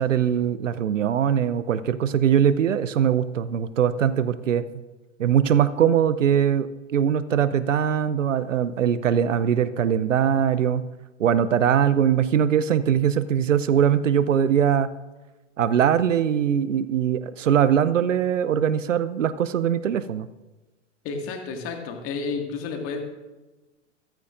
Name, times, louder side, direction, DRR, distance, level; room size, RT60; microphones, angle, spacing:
voice 1, 0.0-4.6 5.2-10.8 11.2-14.9 15.6-20.3, right 9 dB, 75° right, 15 dB, 0.7 m, -21 dB
voice 2, 21.0-23.0, left 4 dB, 35° left, 3 dB, 2.0 m, -31 dB
14.5 x 13.5 x 2.5 m, 1.2 s
figure-of-eight pair, 100°, 38 cm